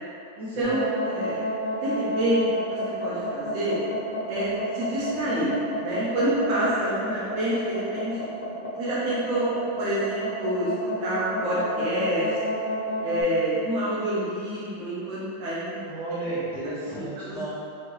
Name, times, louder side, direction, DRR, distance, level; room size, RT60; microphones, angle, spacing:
voice 1, 0.4-1.4 1.7-2.4 2.7-3.8 4.3-5.5 5.8-8.2 8.8-9.5 9.8-10.7 11.0-12.4 13.0-15.8 16.9-17.5, right 1 dB, 55° right, -9 dB, 0.9 m, -27 dB
sound 1, 0.6-13.2, left 1 dB, 90° left, 1.4 m, -30 dB
voice 2, 15.8-17.5, right 2 dB, 45° left, -15 dB, 1.3 m, -33 dB
4.6 x 2.7 x 3.1 m, 2.6 s
omnidirectional pair, 2.1 m